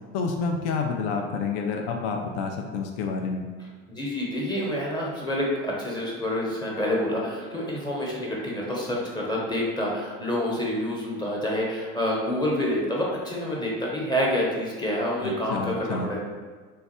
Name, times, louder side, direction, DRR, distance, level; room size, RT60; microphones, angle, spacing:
voice 1, 0.1-3.4 15.2-16.1, left 4 dB, 65° left, 3 dB, 0.5 m, -29 dB
voice 2, 3.9-16.2, left 1 dB, 10° left, -4 dB, 0.9 m, -27 dB
3.3 x 2.3 x 4.2 m, 1.4 s
supercardioid pair, 120°, 34 cm